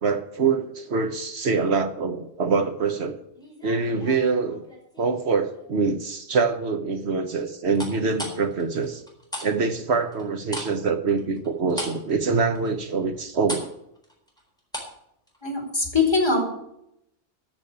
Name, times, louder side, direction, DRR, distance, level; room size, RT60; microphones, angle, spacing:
voice 1, 0.0-3.2 3.6-4.6 5.0-9.0 9.4-13.7, right 4 dB, 75° right, 1.3 m, -25 dB
sound 1, 3.3-5.1 5.5-6.0 7.7-9.5 9.8-15.0 15.3-15.4, equal, 5° left, 4.1 m, -37 dB
voice 2, 15.4-16.4, left 4 dB, 25° left, 4.3 m, -22 dB
13.5 x 6.3 x 8.6 m
omnidirectional pair, 1.2 m